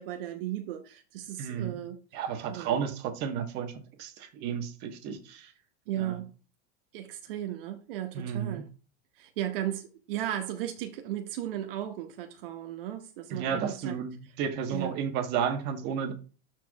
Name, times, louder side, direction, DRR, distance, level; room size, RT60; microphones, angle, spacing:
voice 1, 0.0-2.0 2.5-2.8 5.9-6.3 6.9-8.7 9.2-14.0 14.7-15.0, right 12 dB, 65° right, 1.0 m, -35 dB
voice 2, 1.4-1.8 2.1-3.7 4.0-5.5 6.0-6.2 8.1-8.6 13.3-16.1, right 7 dB, 35° right, 1.3 m, -32 dB
12.5 x 4.7 x 2.3 m
supercardioid pair, 165°, 30 cm